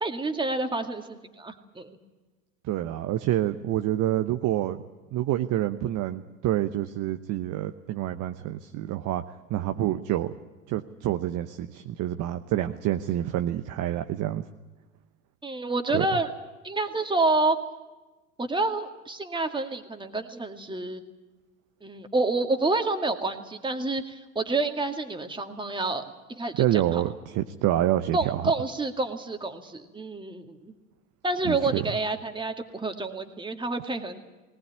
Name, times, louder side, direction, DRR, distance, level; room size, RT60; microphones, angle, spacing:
voice 1, 0.0-2.0 15.4-16.3 16.6-17.6 18.4-21.0 21.8-26.0 26.3-27.0 28.1-30.7 31.2-34.2, right 3 dB, 10° right, 6 dB, 2.2 m, -28 dB
voice 2, 2.7-4.8 5.1-9.2 9.5-10.3 10.7-14.4 15.9-16.1 26.6-28.5 31.4-31.8, right 13 dB, 45° right, 8 dB, 1.0 m, -27 dB
19.5 x 19.0 x 9.4 m, 1.2 s
hypercardioid pair, 85°, 44 cm